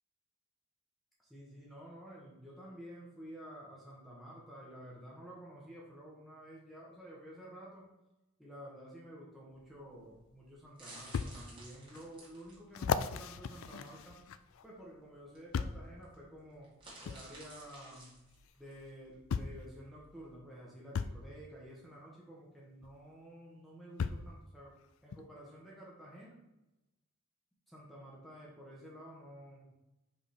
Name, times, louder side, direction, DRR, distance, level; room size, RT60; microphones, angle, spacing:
voice 1, 1.2-7.8 8.4-14.2 14.6-16.7 17.0-18.1 18.6-24.7 25.0-26.4 27.7-29.7, equal, ahead, -6 dB, 1.2 m, -51 dB
sound 1, 9.5-20.3, right 2 dB, 25° right, 1.9 m, -56 dB
sound 2, 10.0-10.1 11.1-11.3 11.9-12.0 12.7-14.6 15.5-15.9 17.1-17.2 18.5-18.6 19.3-19.6 20.9-21.2 22.8-22.9 24.0-24.3 25.1-25.2, left 6 dB, 70° left, 0.3 m, -36 dB
5.3 x 4.8 x 4.3 m, 0.98 s
head